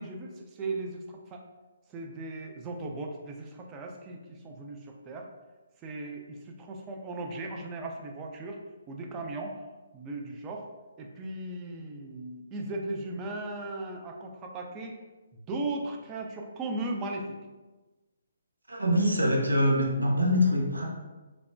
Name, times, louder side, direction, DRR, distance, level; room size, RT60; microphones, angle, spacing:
voice 1, 0.0-1.4 1.9-5.3 5.8-8.6 8.9-9.6 9.9-10.7 11.0-15.0 15.3-17.4, right 2 dB, 20° right, 2 dB, 0.4 m, -37 dB
voice 2, 18.7-20.8, left 1 dB, 85° right, -2 dB, 0.7 m, -24 dB
3.1 x 2.1 x 2.5 m, 1.2 s
figure-of-eight pair, 140°, 0 cm